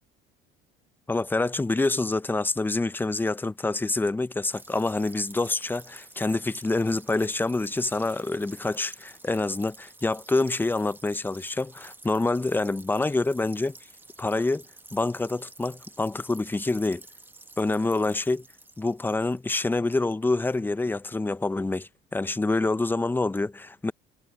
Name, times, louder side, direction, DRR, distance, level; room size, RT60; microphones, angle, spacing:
voice 1, 1.1-13.8 14.2-14.6 14.9-17.0 17.6-18.4 18.8-23.9, left 2 dB, 10° left, 0.6 m, -26 dB
sound 1, 4.5-19.5, right 2 dB, 10° right, 1.4 m, -50 dB
sound 2, 7.7-8.7, right 31 dB, 90° right, 4.9 m, -60 dB
cardioid pair, 105°, 21 cm